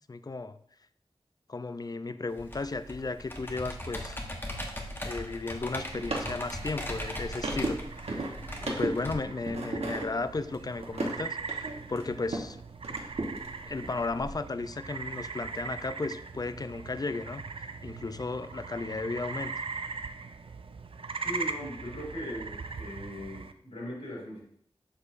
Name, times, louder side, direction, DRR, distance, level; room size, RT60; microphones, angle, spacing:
voice 1, 0.1-0.6 1.5-4.2 5.0-7.8 8.1-8.2 8.6-12.6 13.7-17.4 17.8-19.5, left 3 dB, 40° left, 13 dB, 0.4 m, -34 dB
Computer keyboard, 2.4-9.1, left 1 dB, 20° left, 1.0 m, -39 dB
sound 1, 5.5-12.5 12.8-14.3, right 2 dB, 85° right, 1.1 m, -36 dB
sound 2, 5.9-23.5, right 4 dB, 60° right, 0.4 m, -41 dB
voice 2, 21.2-24.4, equal, 70° left, -5 dB, 2.8 m, -39 dB
7.2 x 6.3 x 2.5 m, 0.67 s
wide cardioid pair, 65°, 10 cm